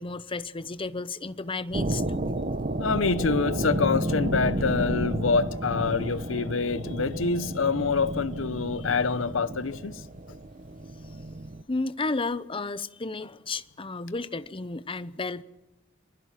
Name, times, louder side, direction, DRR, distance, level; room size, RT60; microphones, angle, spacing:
voice 1, 0.0-2.2 11.7-15.4, left 3 dB, 25° left, 0.8 m, -32 dB
sound 1, 1.7-11.6, right 1 dB, 40° right, 1.1 m, -32 dB
voice 2, 2.8-10.0, left 4 dB, 80° left, 0.8 m, -26 dB
Bass guitar, 3.7-8.0, equal, 20° right, 1.4 m, -36 dB
26.5 x 20.5 x 5.9 m
head